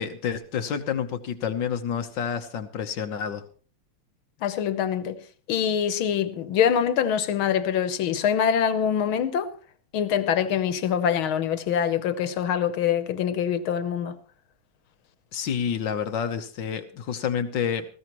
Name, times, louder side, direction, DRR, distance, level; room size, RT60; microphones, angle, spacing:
voice 1, 0.0-3.4 15.3-17.9, left 7 dB, 65° left, 1.7 m, -29 dB
voice 2, 4.4-5.2 5.5-9.5 9.9-14.2, left 8 dB, 90° left, 1.9 m, -24 dB
19.5 x 15.5 x 3.0 m
omnidirectional pair, 2.2 m